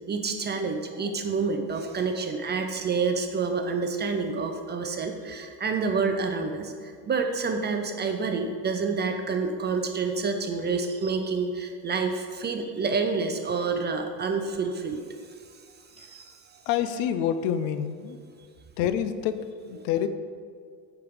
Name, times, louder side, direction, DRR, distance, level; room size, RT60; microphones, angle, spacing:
voice 1, 0.1-15.0 15.9-16.6, right 4 dB, 25° right, 5 dB, 0.4 m, -28 dB
voice 2, 13.5-13.9 16.0-16.1 16.7-18.2 18.8-20.1, left 9 dB, 60° left, 11 dB, 0.6 m, -28 dB
8.3 x 3.7 x 4.7 m, 2.1 s
hypercardioid pair, 90°, 48 cm